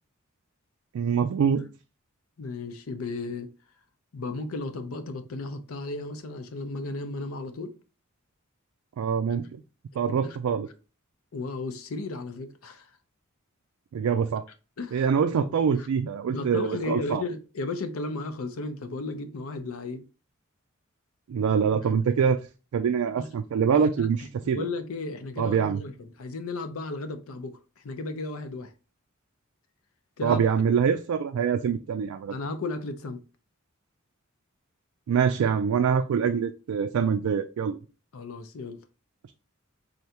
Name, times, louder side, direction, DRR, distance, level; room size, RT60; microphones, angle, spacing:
voice 1, 0.9-1.7 9.0-9.6 10.0-10.7 13.9-14.4 14.9-17.2 21.3-22.4 22.7-24.7 25.4-25.8 30.2-32.4 35.1-37.8, right 7 dB, 85° right, 0.3 m, -25 dB
voice 2, 2.4-3.5 4.1-7.7 10.2-10.4 11.3-12.9 14.8-15.1 15.8-15.9 16.3-20.0 23.2-23.3 23.7-27.6 27.8-28.7 30.2-30.4 32.3-33.2 38.1-38.8, left 3 dB, 85° left, 0.6 m, -34 dB
3.8 x 3.4 x 2.8 m
head